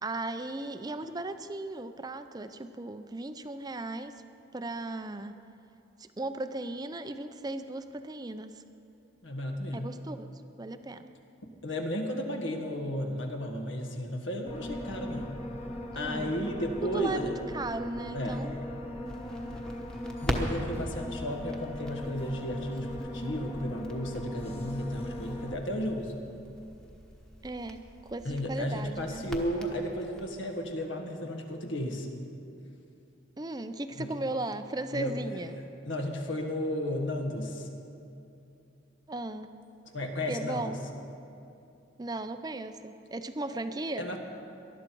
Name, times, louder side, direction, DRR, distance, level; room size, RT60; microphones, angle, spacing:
voice 1, 0.0-4.1 4.5-5.4 6.0-8.6 9.7-10.3 10.6-11.1 15.9-16.3 16.8-18.6 27.4-29.3 33.4-35.6 39.1-39.5 40.3-40.8 42.0-44.1, right 2 dB, 20° right, 10 dB, 0.5 m, -37 dB
voice 2, 9.2-10.0 11.6-15.4 15.9-17.3 18.1-18.5 20.2-26.2 28.2-32.1 34.0-34.1 34.9-35.4 35.8-37.7 39.9-40.8 44.0-44.2, equal, 75° left, 3 dB, 1.5 m, -33 dB
sound 1, 14.4-25.6, left 1 dB, 30° left, 1.2 m, -39 dB
Crackle, 19.0-30.2, equal, 5° left, 1.1 m, -41 dB
19.5 x 12.0 x 4.6 m, 2.7 s
head